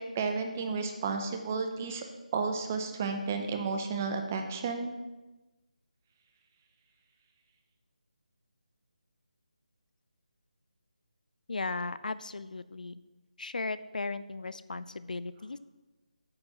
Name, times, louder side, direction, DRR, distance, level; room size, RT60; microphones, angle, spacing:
voice 1, 0.0-2.0 2.3-4.9, right 4 dB, 15° right, 5 dB, 0.5 m, -32 dB
voice 2, 11.5-13.0 13.4-15.6, left 3 dB, 80° left, 15 dB, 0.4 m, -36 dB
8.7 x 7.5 x 2.9 m, 1.1 s
figure-of-eight pair, 170°, 4 cm